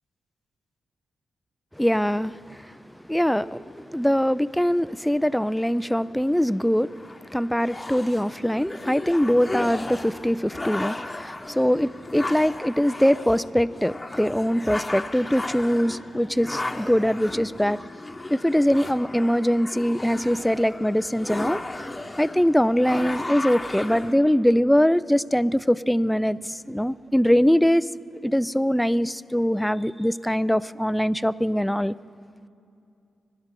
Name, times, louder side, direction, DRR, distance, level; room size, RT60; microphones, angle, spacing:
voice 1, 1.8-2.3 3.1-6.9 7.3-17.8 18.3-21.6 22.2-27.9 28.2-31.9, equal, 5° left, 17 dB, 0.4 m, -22 dB
sound 1, 6.9-24.1, left 2 dB, 25° left, 1.1 m, -35 dB
25.5 x 12.0 x 3.7 m, 2.6 s
supercardioid pair, 40°, 0 cm